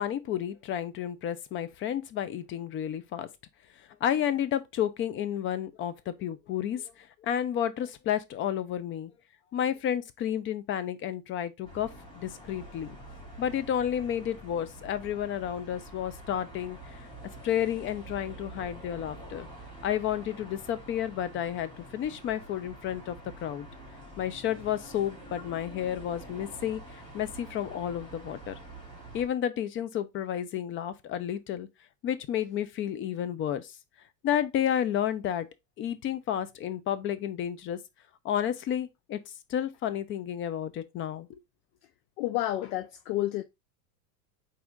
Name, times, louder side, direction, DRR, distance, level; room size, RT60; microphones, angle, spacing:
voice 1, 0.0-3.3 4.0-9.1 9.5-11.9 12.1-13.0 13.4-16.8 17.4-19.5 19.8-23.7 24.2-26.8 27.1-28.6 29.1-31.7 32.0-33.7 34.2-35.5 35.8-37.8 38.2-39.2 39.5-41.4, left 10 dB, 25° left, 0.4 m, -31 dB
sound 1, 11.6-29.3, right 1 dB, 10° left, 2.2 m, -46 dB
voice 2, 42.2-43.4, left 15 dB, 65° left, 0.6 m, -30 dB
4.1 x 2.7 x 3.5 m
hypercardioid pair, 100°, 49 cm